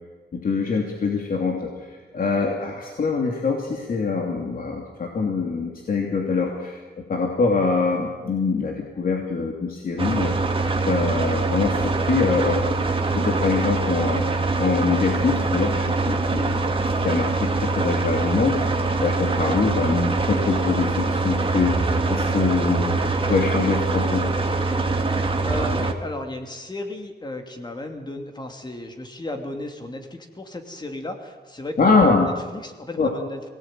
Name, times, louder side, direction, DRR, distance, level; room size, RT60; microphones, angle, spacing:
voice 1, 0.3-1.7 2.1-6.8 7.1-10.3 10.8-12.6 13.0-14.2 14.6-16.6 17.0-18.6 19.0-23.0 23.2-24.3 31.8-32.3 33.0-33.1, left 4 dB, 55° left, 1 dB, 2.8 m, -24 dB
sound 1, 10.0-25.9, right 3 dB, 30° right, 1.9 m, -23 dB
voice 2, 25.5-33.5, left 1 dB, 25° left, 5 dB, 2.7 m, -34 dB
22.5 x 18.5 x 9.1 m, 1.4 s
wide cardioid pair, 145°, 18 cm